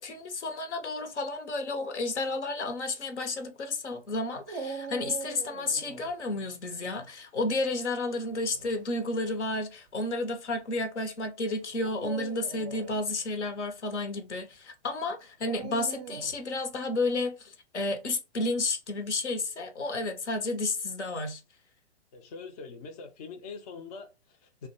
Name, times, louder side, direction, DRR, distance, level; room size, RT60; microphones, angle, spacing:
voice 1, 0.0-21.4, left 2 dB, 75° left, 0.8 m, -32 dB
Dog, 4.5-6.1 8.2-8.7 9.5-9.6 11.7-13.0 15.4-16.4, right 5 dB, 35° right, 0.5 m, -41 dB
voice 2, 22.1-24.7, left 4 dB, 35° left, 0.4 m, -43 dB
2.5 x 2.2 x 2.5 m
figure-of-eight pair, 120°, 35 cm